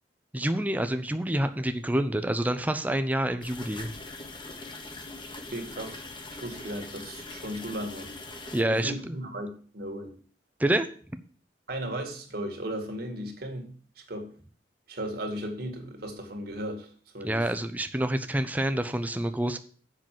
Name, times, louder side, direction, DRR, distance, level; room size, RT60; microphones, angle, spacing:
voice 1, 0.3-3.9 8.5-9.2 10.6-10.9 17.2-19.6, right 1 dB, 10° right, 0.6 m, -27 dB
sound 1, 3.4-8.6, left 2 dB, 25° left, 1.3 m, -42 dB
voice 2, 5.5-6.0 6.3-10.1 11.7-14.3 14.9-17.5, right 1 dB, 60° right, 2.1 m, -36 dB
7.6 x 5.9 x 7.5 m
head